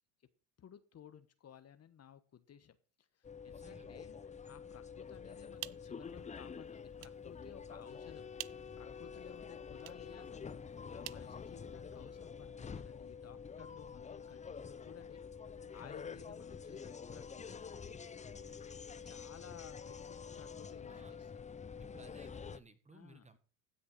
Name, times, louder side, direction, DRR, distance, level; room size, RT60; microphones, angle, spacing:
voice 1, 0.6-8.3 8.7-15.2 15.5-17.6 19.0-21.3 22.9-23.3, left 9 dB, 35° left, 12 dB, 1.2 m, -57 dB
sound 1, 3.2-22.6, left 6 dB, 15° left, 0.7 m, -48 dB
voice 2, 3.4-4.1 18.3-18.6 20.9-21.2 21.8-23.4, right 3 dB, 15° right, 11 dB, 1.8 m, -60 dB
sound 2, 5.3-12.1, right 23 dB, 70° right, 0.6 m, -53 dB
15.5 x 6.6 x 5.3 m, 0.40 s
hypercardioid pair, 80°, 42 cm